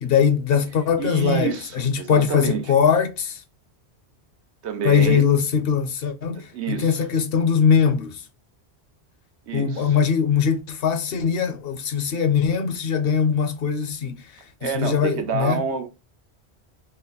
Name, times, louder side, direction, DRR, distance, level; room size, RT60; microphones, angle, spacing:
voice 1, 0.0-3.4 4.8-8.2 9.5-14.2 14.6-15.6, left 7 dB, 65° left, 0.7 m, -21 dB
voice 2, 1.0-2.6 4.6-5.3 6.3-7.0 9.5-10.0 14.6-15.9, right 7 dB, 80° right, 1.0 m, -28 dB
3.9 x 2.1 x 3.8 m
omnidirectional pair, 1.1 m